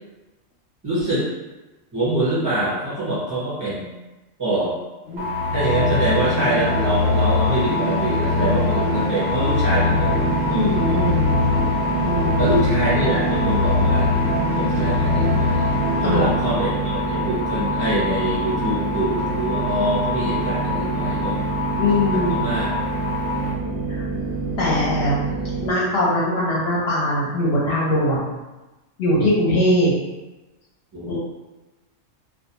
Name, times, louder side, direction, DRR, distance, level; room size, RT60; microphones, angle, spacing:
voice 1, 0.8-1.3 1.9-3.9 4.4-4.7 5.5-10.3 12.4-14.1 14.5-15.7 16.0-21.4 22.1-22.8 30.9-31.2, right 1 dB, 30° right, -10 dB, 0.4 m, -24 dB
sound 1, 5.1-16.8, left 2 dB, 65° right, 0.7 m, -22 dB
sound 2, 5.2-23.5, left 5 dB, 90° right, 1.0 m, -28 dB
sound 3, 9.9-25.7, right 4 dB, 10° left, 0.9 m, -27 dB
voice 2, 10.5-11.5 12.0-12.6 16.0-16.3 21.8-22.3 23.9-24.0 24.6-25.2 25.6-28.3 29.0-29.9 31.1-31.2, left 1 dB, 65° left, -6 dB, 0.7 m, -21 dB
2.3 x 2.2 x 2.7 m, 1.1 s
omnidirectional pair, 1.3 m